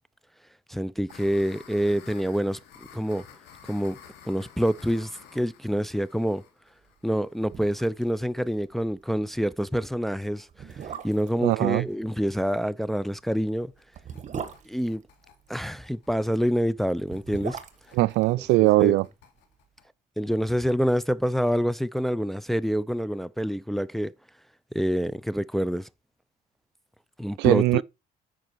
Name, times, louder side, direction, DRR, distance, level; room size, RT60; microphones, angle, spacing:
voice 1, 0.7-3.3 3.7-4.0 4.3-6.4 7.0-13.7 14.7-15.0 15.5-17.6 18.6-19.0 20.2-24.1 24.7-25.9 27.2-27.8, equal, ahead, 0.5 m, -27 dB
sound 1, 1.1-8.7 9.1-9.2 9.5-9.6 9.8-9.9 10.2-10.5 10.8-19.9, left 8 dB, 90° left, 2.8 m, -52 dB
sound 2, 7.1-7.2 7.4-8.1 8.4-8.5 8.9-9.1 9.8-9.9 10.5-11.4 12.9-15.6 16.9-19.1 19.4-19.5, right 7 dB, 45° right, 1.5 m, -39 dB
voice 2, 11.4-11.9 18.0-19.1 27.4-27.8, right 19 dB, 85° right, 0.4 m, -20 dB
9.3 x 6.3 x 4.5 m
cardioid pair, 110°, 17 cm